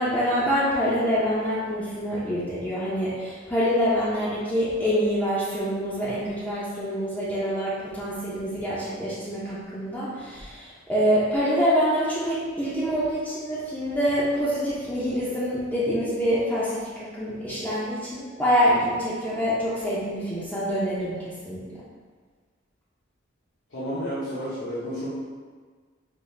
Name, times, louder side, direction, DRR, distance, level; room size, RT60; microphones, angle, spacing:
voice 1, 0.0-21.6, equal, 10° left, -9 dB, 0.5 m, -26 dB
voice 2, 23.7-25.1, equal, 75° left, -11 dB, 0.8 m, -31 dB
3.6 x 2.4 x 3.1 m, 1.5 s
head